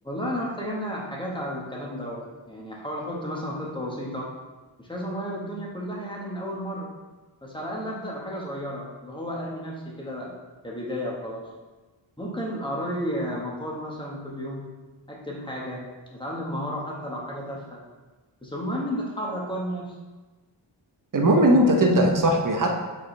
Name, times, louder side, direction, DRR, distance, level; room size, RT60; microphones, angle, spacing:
voice 1, 0.0-4.3 4.8-6.9 7.4-10.3 10.6-11.5 12.2-14.7 15.1-15.8 16.1-17.8 18.4-19.9 21.6-22.4, equal, 10° left, -3 dB, 1.5 m, -32 dB
voice 2, 21.1-22.7, right 1 dB, 40° right, 1 dB, 1.0 m, -19 dB
6.3 x 5.2 x 3.3 m, 1.2 s
wide cardioid pair, 70°, 48 cm